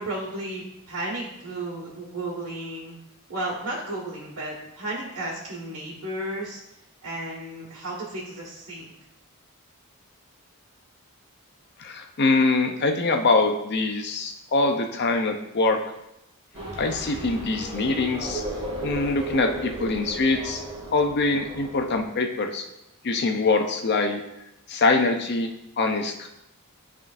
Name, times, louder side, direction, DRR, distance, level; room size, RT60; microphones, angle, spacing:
voice 1, 0.0-3.0 3.3-6.6 7.0-8.9, right 1 dB, 85° right, -8 dB, 1.5 m, -33 dB
voice 2, 11.8-15.8 16.8-18.4 18.8-20.6 20.9-22.6 23.0-24.2 24.7-25.5 25.8-26.3, left 3 dB, 50° left, 5 dB, 0.6 m, -23 dB
sound 1, 16.5-22.0, right 1 dB, 30° right, 1.7 m, -35 dB
10.5 x 3.7 x 2.5 m, 0.87 s
head